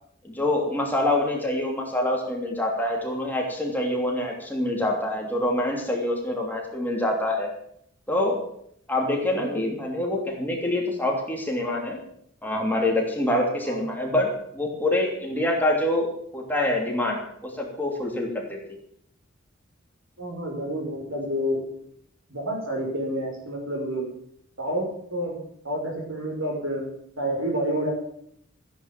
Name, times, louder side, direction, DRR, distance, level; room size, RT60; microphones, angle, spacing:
voice 1, 0.2-7.5 8.1-8.4 8.9-12.0 12.4-18.6, left 1 dB, 10° left, -1 dB, 3.0 m, -26 dB
voice 2, 9.3-9.6 13.7-13.8 20.2-21.6 22.3-24.1 24.6-25.4 25.6-27.9, equal, 75° right, 1 dB, 6.0 m, -29 dB
15.0 x 10.5 x 7.6 m, 0.69 s
head